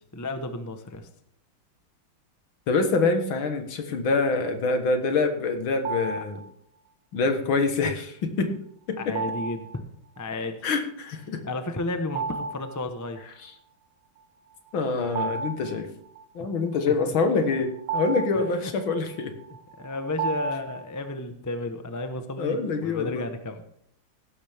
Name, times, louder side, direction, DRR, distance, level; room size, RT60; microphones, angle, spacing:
voice 1, 0.1-1.1 9.0-9.8 10.2-10.6 11.4-13.3 16.9-17.0 18.4-18.7 19.8-23.6, left 2 dB, 15° left, 7 dB, 0.6 m, -33 dB
voice 2, 2.7-6.4 7.1-8.5 8.9-9.2 10.6-11.4 13.4-13.5 14.7-15.9 16.4-19.3 22.4-23.2, left 4 dB, 70° left, 7 dB, 2.2 m, -25 dB
sound 1, 5.8-6.5 9.2-9.8 12.1-12.8 13.2-13.3 14.7-16.2 17.2-21.1, right 4 dB, 70° right, 1.7 m, -33 dB
16.0 x 12.0 x 3.6 m, 0.70 s
omnidirectional pair, 2.3 m